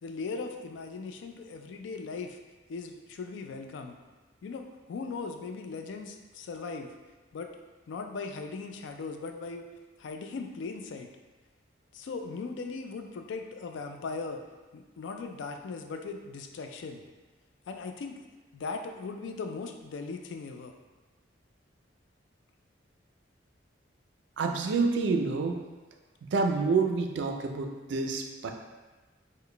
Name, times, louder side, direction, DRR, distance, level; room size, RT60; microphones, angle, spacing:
voice 1, 0.0-2.4 2.7-4.0 4.4-6.9 7.3-7.5 7.9-9.7 10.0-11.1 11.9-14.4 14.7-17.0 17.7-18.2 18.5-20.7, left 4 dB, 70° left, 5 dB, 0.3 m, -38 dB
voice 2, 24.4-25.6 26.3-28.5, right 4 dB, 65° right, 4 dB, 0.3 m, -28 dB
3.8 x 2.1 x 3.2 m, 1.2 s
head